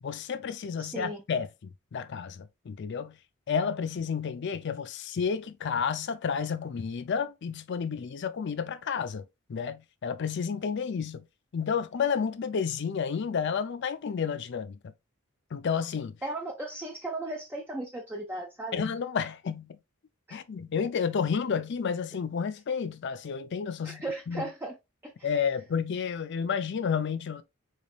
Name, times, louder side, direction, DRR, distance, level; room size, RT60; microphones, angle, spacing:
voice 1, 0.0-3.2 3.5-9.2 9.5-11.3 11.5-14.9 15.5-16.2 18.7-19.8 20.3-24.5 25.2-27.4, left 6 dB, 55° left, 0.4 m, -31 dB
voice 2, 0.8-1.2 16.2-18.9 20.3-20.4 23.8-24.8 25.0-25.4, right 2 dB, 10° right, 0.5 m, -36 dB
4.0 x 3.4 x 2.4 m
head